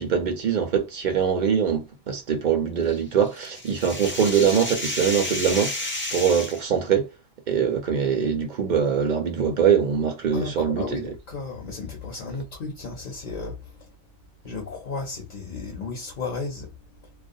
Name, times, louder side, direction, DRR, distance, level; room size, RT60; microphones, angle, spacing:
voice 1, 0.0-7.1 7.5-11.1, right 7 dB, 50° right, 0.6 m, -23 dB
sound 1, 2.9-6.7, left 2 dB, 20° left, 0.3 m, -31 dB
voice 2, 10.3-14.0 14.4-17.3, left 4 dB, 50° left, 0.8 m, -34 dB
2.4 x 2.1 x 2.6 m
omnidirectional pair, 1.2 m